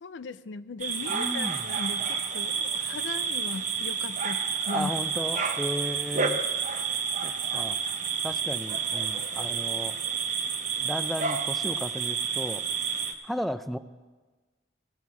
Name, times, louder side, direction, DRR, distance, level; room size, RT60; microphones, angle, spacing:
voice 1, 0.0-4.9, left 4 dB, 85° left, 15 dB, 0.4 m, -38 dB
sound 1, 0.8-13.1, right 6 dB, 45° right, 0.8 m, -30 dB
voice 2, 1.1-1.6 4.7-6.4 7.2-7.8 8.2-10.0 10.8-12.6 13.2-13.8, equal, ahead, 12 dB, 0.3 m, -34 dB
16.0 x 6.2 x 7.1 m, 1.3 s
head